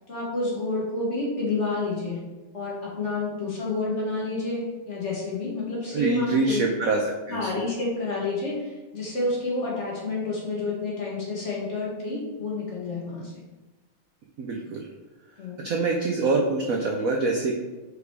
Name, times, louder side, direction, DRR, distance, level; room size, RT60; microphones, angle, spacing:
voice 1, 0.1-2.2 2.5-6.6 7.3-13.4 15.4-15.6, left 3 dB, 35° left, -5 dB, 1.9 m, -29 dB
voice 2, 5.9-7.0 7.3-7.4 14.4-14.9 15.6-17.5, right 3 dB, 70° right, 1 dB, 0.8 m, -25 dB
5.1 x 4.9 x 4.7 m, 1.2 s
omnidirectional pair, 2.3 m